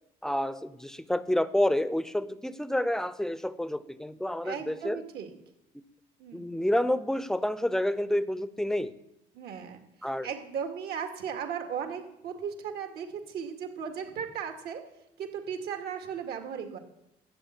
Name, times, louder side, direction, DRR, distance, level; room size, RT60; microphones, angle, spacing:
voice 1, 0.2-5.0 5.7-5.8 6.3-9.0 10.0-10.3, left 1 dB, 5° left, 16 dB, 0.7 m, -29 dB
voice 2, 4.4-5.3 6.2-6.5 9.3-9.8 10.2-14.8 15.2-16.8, right 7 dB, 70° right, 5 dB, 2.2 m, -36 dB
13.0 x 7.8 x 8.8 m, 0.85 s
cardioid pair, 110°, 17 cm